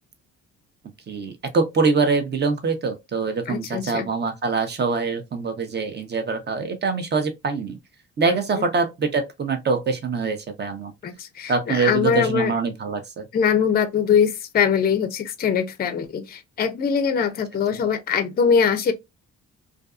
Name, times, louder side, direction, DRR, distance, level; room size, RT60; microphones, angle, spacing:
voice 1, 1.1-7.8 8.2-10.9 11.5-13.3 17.7-17.8, right 4 dB, 35° right, 0.7 m, -24 dB
voice 2, 3.5-4.1 8.3-8.6 11.0-12.5 13.3-18.9, left 7 dB, 30° left, 0.5 m, -22 dB
2.5 x 2.4 x 2.3 m
cardioid pair, 90°, 30 cm